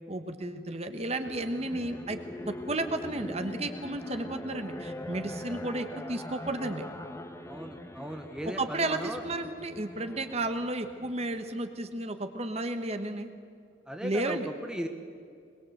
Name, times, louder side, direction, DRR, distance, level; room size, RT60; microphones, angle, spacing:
voice 1, 0.1-2.2 2.5-6.8 8.6-13.3 14.0-14.5, right 2 dB, 35° right, 8 dB, 1.2 m, -33 dB
sound 1, 1.2-11.7, left 1 dB, 15° left, 1.1 m, -42 dB
voice 2, 7.4-9.2 13.9-14.9, equal, 5° right, 4 dB, 1.1 m, -37 dB
22.0 x 22.0 x 8.0 m, 2.3 s
head